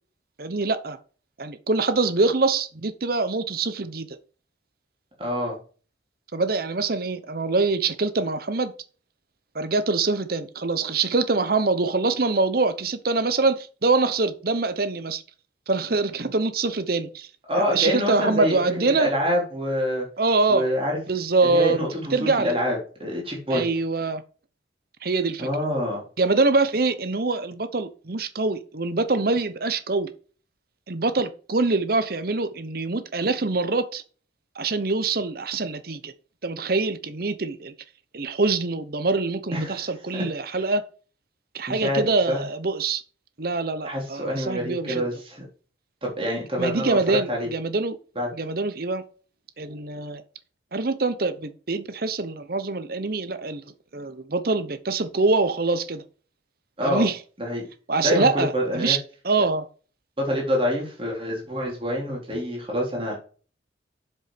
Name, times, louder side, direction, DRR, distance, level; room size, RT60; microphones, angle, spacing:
voice 1, 0.4-1.0 1.4-4.2 6.3-8.7 9.5-15.2 15.7-17.3 17.5-19.1 20.2-20.7 21.1-22.6 23.5-24.2 25.0-25.5 26.2-30.1 30.9-34.0 34.6-36.1 36.4-37.7 38.1-40.8 41.5-43.0 43.4-45.1 46.6-48.0 48.3-49.0 49.6-50.2 50.7-53.6 53.9-56.0 56.8-57.2 57.9-59.0 59.2-59.7, right 3 dB, 50° right, 0.9 m, -24 dB
voice 2, 5.2-5.6 17.5-18.6 18.9-20.1 20.5-21.0 21.4-23.6 25.4-26.0 39.5-40.6 41.7-42.0 42.3-42.4 43.8-45.4 46.0-47.5 48.2-48.3 56.8-57.1 57.4-57.7 58.0-59.0 60.2-63.2, equal, 30° right, 4.0 m, -26 dB
7.7 x 7.6 x 5.1 m
head